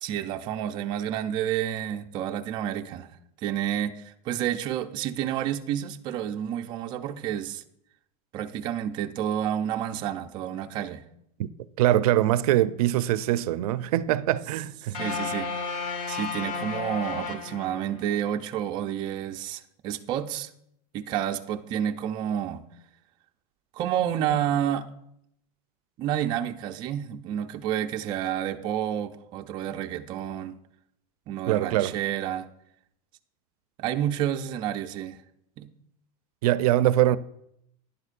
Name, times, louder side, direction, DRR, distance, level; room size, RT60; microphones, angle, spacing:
voice 1, 0.0-3.1 3.4-7.6 8.3-11.0 14.9-20.5 20.9-22.6 23.7-24.9 26.0-30.6 31.3-32.5 33.8-35.2 35.6-35.7, right 10 dB, 25° right, 0.4 m, -30 dB
voice 2, 11.8-15.0 31.5-31.9 36.4-37.2, right 13 dB, 90° right, 0.4 m, -23 dB
sound 1, 14.9-18.2, left 4 dB, 70° left, 1.3 m, -33 dB
11.0 x 10.5 x 2.5 m
supercardioid pair, 170°, 19 cm